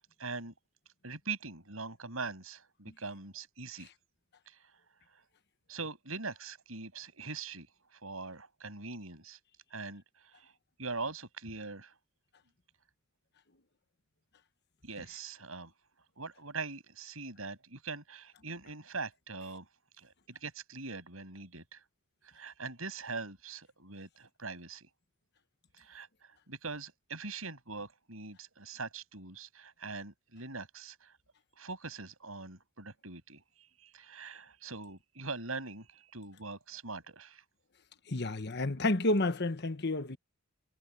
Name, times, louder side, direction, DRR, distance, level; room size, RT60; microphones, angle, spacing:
voice 1, 0.2-0.5 1.0-3.9 4.5-4.6 5.7-7.7 7.9-9.4 9.7-10.5 10.8-11.9 14.8-15.7 16.2-19.7 20.0-21.8 22.3-24.9 25.8-26.1 26.5-31.1 31.6-37.4, right 4 dB, 75° right, 6.9 m, -42 dB
voice 2, 38.1-40.2, left 2 dB, 50° left, 1.2 m, -30 dB
head